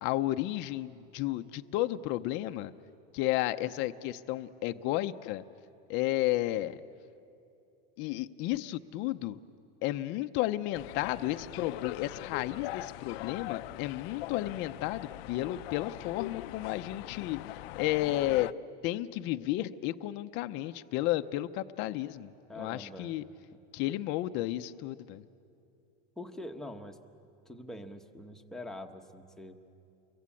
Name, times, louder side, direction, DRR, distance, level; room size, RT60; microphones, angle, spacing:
voice 1, 0.0-2.7 3.1-5.4 5.9-6.8 8.0-9.4 9.8-18.5 18.8-23.2 23.7-25.2, left 15 dB, 40° left, 9 dB, 0.6 m, -32 dB
sound 1, 10.7-18.5, left 17 dB, 80° left, 0.6 m, -41 dB
voice 2, 22.5-23.2 26.2-27.0 27.5-29.6, left 1 dB, ahead, 4 dB, 1.0 m, -44 dB
29.5 x 23.0 x 8.5 m, 2.6 s
supercardioid pair, 165°, 30 cm